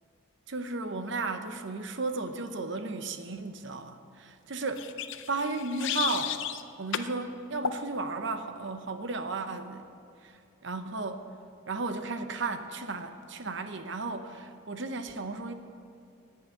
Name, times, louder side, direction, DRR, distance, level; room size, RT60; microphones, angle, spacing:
voice 1, 0.5-4.9 5.3-6.4 6.8-9.9 10.2-10.3 10.6-11.2 11.7-15.6, right 3 dB, 60° right, 8 dB, 0.8 m, -34 dB
sound 1, 4.8-6.6 6.9-7.1 7.6-7.8, left 9 dB, 60° left, 0.5 m, -33 dB
10.5 x 8.7 x 8.9 m, 2.5 s
head